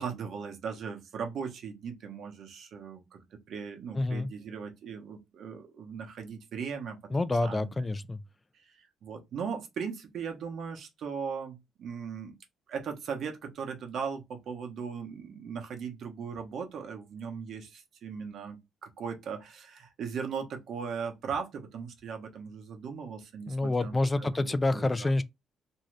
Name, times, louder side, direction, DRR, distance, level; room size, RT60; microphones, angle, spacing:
voice 1, 0.0-7.0 7.4-7.9 8.7-12.3 12.7-25.1, right 6 dB, 70° right, 0.8 m, -38 dB
voice 2, 4.0-4.3 7.1-8.2 23.5-25.2, left 2 dB, 20° left, 0.3 m, -28 dB
2.6 x 2.4 x 3.1 m
cardioid pair, 90°, 0 cm